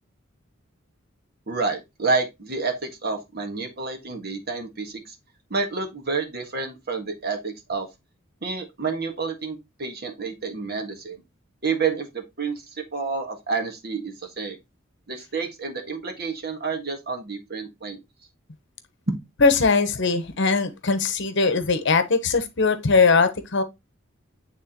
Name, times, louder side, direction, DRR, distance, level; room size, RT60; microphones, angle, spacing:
voice 1, 1.5-5.1 5.5-7.9 8.4-11.2 11.6-14.6 15.1-18.0, right 4 dB, 50° right, 1.5 m, -29 dB
voice 2, 19.4-23.6, left 4 dB, 60° left, 0.9 m, -20 dB
9.2 x 3.6 x 2.9 m
head